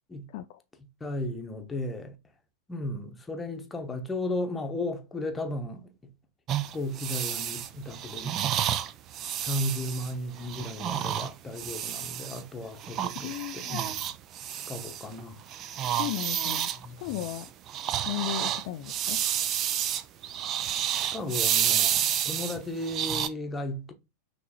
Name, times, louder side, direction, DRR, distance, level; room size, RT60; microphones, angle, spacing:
voice 1, 0.3-0.6 13.2-13.8 16.0-16.7 17.0-17.5 18.1-19.2, left 13 dB, 50° left, 0.3 m, -35 dB
voice 2, 1.0-2.1 2.7-5.9 6.7-8.4 9.4-14.0 14.5-15.4 16.8-17.2 20.9-23.9, left 1 dB, 15° left, 1.0 m, -35 dB
sound 1, 6.5-12.4 12.8-15.2 15.5-23.3, right 10 dB, 35° right, 0.4 m, -30 dB
5.7 x 3.1 x 2.8 m
figure-of-eight pair, 90°, 0 cm